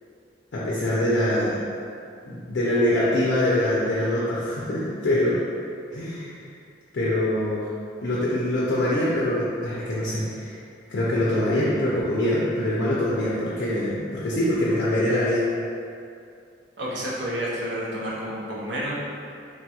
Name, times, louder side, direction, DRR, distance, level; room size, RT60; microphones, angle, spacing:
voice 1, 0.5-1.6 2.2-5.4 5.9-6.4 6.9-7.7 8.0-10.6 10.9-15.5, left 1 dB, 60° left, -7 dB, 0.4 m, -24 dB
voice 2, 16.8-18.9, equal, 65° right, -6 dB, 0.6 m, -30 dB
3.2 x 2.3 x 2.8 m, 2.4 s
head